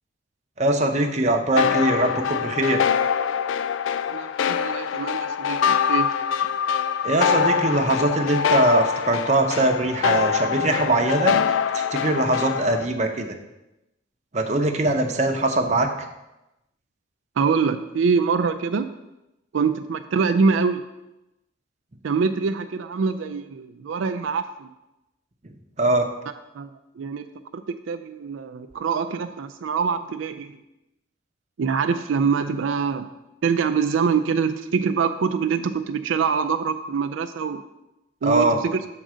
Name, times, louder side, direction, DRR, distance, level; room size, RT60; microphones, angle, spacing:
voice 1, 0.6-2.8 7.0-13.3 14.3-15.9 25.4-26.1 38.2-38.6, right 2 dB, 35° right, 3 dB, 0.8 m, -22 dB
sound 1, 1.6-12.8, left 7 dB, 80° left, 0.3 m, -24 dB
voice 2, 4.1-6.1 17.4-18.9 19.5-20.8 22.0-24.7 26.5-30.6 31.6-33.1 33.4-37.6 38.2-38.8, right 5 dB, 90° right, 7 dB, 0.4 m, -24 dB
7.5 x 3.9 x 6.2 m, 0.94 s
head